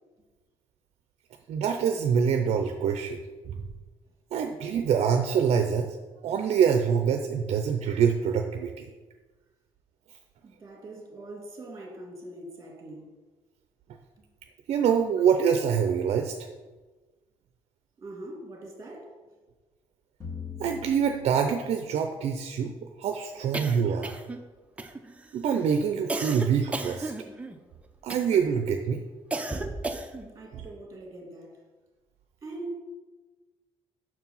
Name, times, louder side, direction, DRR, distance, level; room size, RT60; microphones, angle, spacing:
voice 1, 1.5-3.2 3.4-3.6 4.3-6.0 6.2-8.9 14.7-16.4 20.6-22.7 23.0-24.2 25.3-27.1 28.0-29.0 30.5-30.6, right 7 dB, 60° right, 5 dB, 0.5 m, -25 dB
voice 2, 10.4-13.2 18.0-19.1 30.3-31.6 32.4-32.8, right 2 dB, 30° right, 1 dB, 2.0 m, -42 dB
sound 1, 20.2-22.4, left 6 dB, 25° left, 1.8 m, -42 dB
sound 2, 23.5-24.4 24.8-25.3 26.1-27.6 28.1-28.5 29.3-30.3, right 2 dB, 10° right, 0.6 m, -34 dB
6.0 x 4.6 x 5.5 m, 1.3 s
cardioid pair, 115°, 12 cm